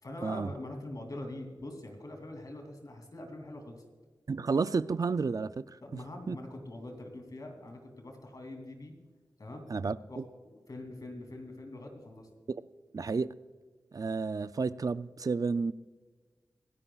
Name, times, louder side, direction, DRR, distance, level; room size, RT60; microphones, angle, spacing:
voice 1, 0.0-3.8 5.8-9.0 9.4-9.7 10.1-12.3, left 1 dB, 55° left, 3 dB, 2.9 m, -43 dB
voice 2, 4.3-5.7 5.9-6.0 6.3-6.4 9.7-10.2 12.9-13.3 13.9-15.7, right 4 dB, 55° right, 15 dB, 0.4 m, -31 dB
24.5 x 11.0 x 2.4 m, 1.4 s
wide cardioid pair, 60°, 7 cm